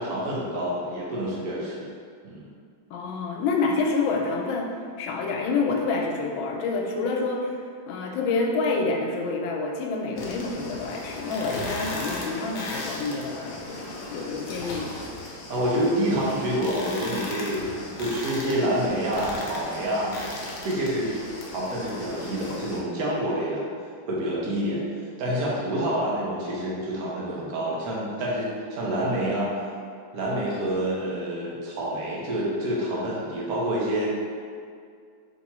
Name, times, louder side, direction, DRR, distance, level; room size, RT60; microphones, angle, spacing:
voice 1, 0.0-1.9 2.2-2.5 15.5-17.6 18.0-20.1 20.6-21.1 21.5-23.6 24.1-24.8 25.2-29.5 30.1-34.2, right 1 dB, 55° right, -5 dB, 1.2 m, -27 dB
voice 2, 2.9-4.7 5.0-7.5 7.9-15.0, left 3 dB, 90° left, 1 dB, 1.4 m, -27 dB
sound 1, 10.2-22.8, left 2 dB, 65° left, 1.0 m, -37 dB
3.5 x 3.0 x 4.2 m, 2.2 s
omnidirectional pair, 2.1 m